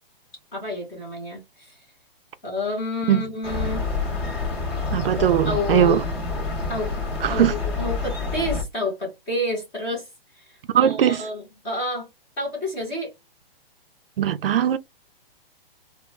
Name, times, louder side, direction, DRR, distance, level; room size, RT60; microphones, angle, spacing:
voice 1, 0.5-1.8 2.4-3.9 5.2-6.0 6.7-6.9 7.3-10.1 10.4-12.1 12.4-13.1, left 2 dB, 10° left, 0.6 m, -29 dB
sound 1, 3.4-8.6, left 4 dB, 25° left, 1.3 m, -28 dB
voice 2, 4.9-6.0 7.2-7.5 10.7-11.2 14.2-14.8, right 10 dB, 75° right, 0.5 m, -20 dB
4.2 x 2.1 x 2.6 m
hypercardioid pair, 175°, 29 cm